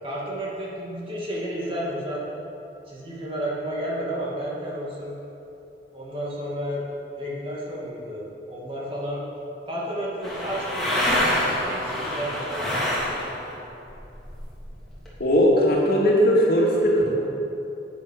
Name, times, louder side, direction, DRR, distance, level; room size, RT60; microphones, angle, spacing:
voice 1, 0.0-2.2 2.9-5.2 5.9-6.8 7.2-9.2 9.7-13.1, equal, 30° right, -5 dB, 2.3 m, -32 dB
sound 1, 10.2-13.5 13.8-15.1, left 1 dB, ahead, 2.8 m, -26 dB
voice 2, 15.2-17.2, equal, 55° left, -4 dB, 2.4 m, -19 dB
10.5 x 9.3 x 6.6 m, 2.8 s
head